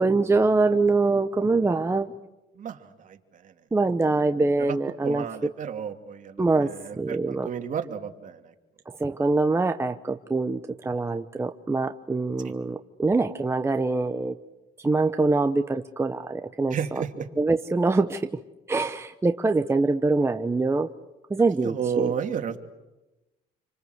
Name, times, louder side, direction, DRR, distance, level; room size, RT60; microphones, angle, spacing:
voice 1, 0.0-2.1 3.7-5.2 6.4-7.5 8.9-14.4 14.8-17.0 17.4-18.3 18.7-20.9 21.3-22.1, right 3 dB, 15° right, 7 dB, 1.0 m, -24 dB
voice 2, 2.6-3.5 4.7-4.8 5.0-8.5 16.7-17.3 21.6-22.6, right 7 dB, 50° right, 5 dB, 2.8 m, -32 dB
27.5 x 25.5 x 8.1 m, 1.0 s
cardioid pair, 110°, 17 cm